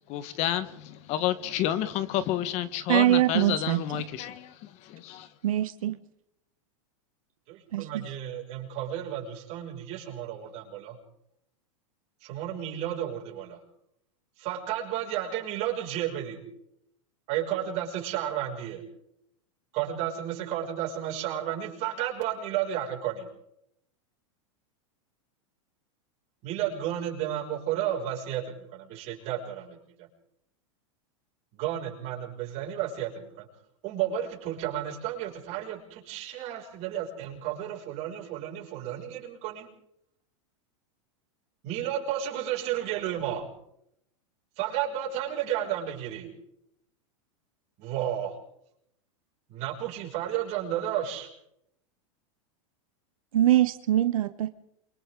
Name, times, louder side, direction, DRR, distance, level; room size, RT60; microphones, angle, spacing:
voice 1, 0.1-5.3, left 12 dB, 40° left, 13 dB, 1.4 m, -30 dB
voice 2, 2.9-3.8 5.4-6.0 7.7-8.1 53.3-54.5, right 13 dB, 85° right, 11 dB, 1.0 m, -23 dB
voice 3, 7.5-11.0 12.2-13.6 14.4-16.4 17.3-18.8 19.7-23.3 26.4-30.1 31.5-33.5 33.8-39.7 41.6-43.5 44.6-46.3 47.8-48.3 49.5-51.3, right 11 dB, 40° right, -1 dB, 6.3 m, -32 dB
28.5 x 24.5 x 3.9 m, 0.76 s
supercardioid pair, 145°, 17 cm